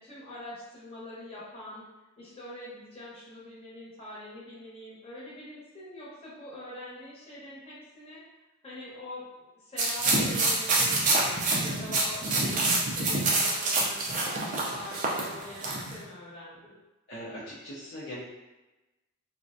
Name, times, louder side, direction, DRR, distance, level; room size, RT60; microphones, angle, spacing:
voice 1, 0.0-1.8 2.2-8.2 8.6-14.1 14.5-16.7, left 1 dB, 25° left, -9 dB, 0.8 m, -44 dB
sound 1, 9.8-15.9, right 2 dB, 35° right, 0.3 m, -26 dB
voice 2, 17.1-18.2, equal, 50° left, -8 dB, 0.4 m, -40 dB
2.4 x 2.0 x 2.5 m, 1.1 s
head